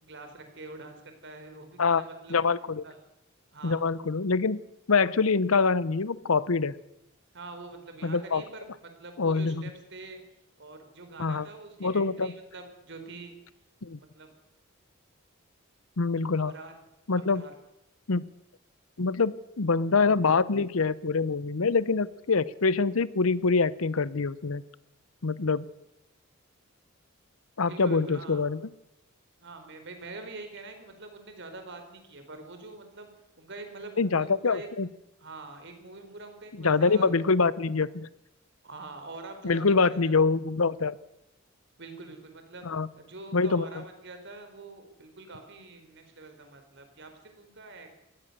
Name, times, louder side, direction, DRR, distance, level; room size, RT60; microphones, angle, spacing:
voice 1, 0.0-2.4 2.8-3.0 3.5-3.8 7.3-10.2 10.6-13.4 14.0-14.3 16.3-16.7 17.2-17.5 27.7-28.5 29.4-33.1 33.4-34.7 35.2-37.2 38.6-40.1 41.8-42.7 42.9-48.0, right 3 dB, 60° right, 6 dB, 4.3 m, -45 dB
voice 2, 2.3-2.8 3.6-4.6 4.9-6.7 8.0-8.4 9.2-9.6 11.2-11.5 11.8-12.3 13.8-14.0 16.0-16.5 17.1-17.4 18.1-18.3 19.0-24.6 25.2-25.7 27.6-28.6 34.0-34.9 36.6-38.1 39.4-40.9 42.6-42.9 43.3-43.7, left 4 dB, 85° left, 18 dB, 0.8 m, -25 dB
22.5 x 18.0 x 6.8 m, 0.86 s
head